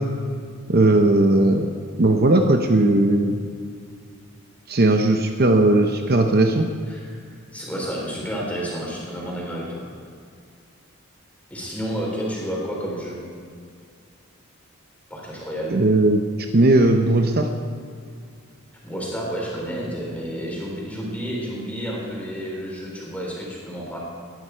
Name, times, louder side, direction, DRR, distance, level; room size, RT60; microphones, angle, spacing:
voice 1, 0.7-1.7 2.0-3.4 4.7-6.7 15.7-16.2 16.5-17.5, right 2 dB, 45° right, 4 dB, 0.8 m, -17 dB
voice 2, 6.9-9.9 11.5-13.2 15.1-15.8 18.8-24.0, equal, 5° left, -4 dB, 3.9 m, -30 dB
19.0 x 11.5 x 4.6 m, 2.2 s
head